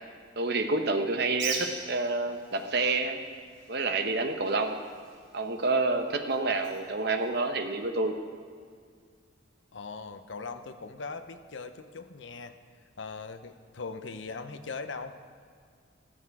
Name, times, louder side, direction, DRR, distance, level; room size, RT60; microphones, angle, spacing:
voice 1, 0.4-3.2 3.7-4.8 5.3-8.2, right 3 dB, 55° right, 6 dB, 1.1 m, -28 dB
Bird, 1.3-7.9, right 5 dB, 70° right, 2.0 m, -43 dB
voice 2, 9.7-12.6 13.0-15.2, left 4 dB, 65° left, 8 dB, 0.8 m, -40 dB
15.0 x 12.5 x 4.8 m, 2.1 s
head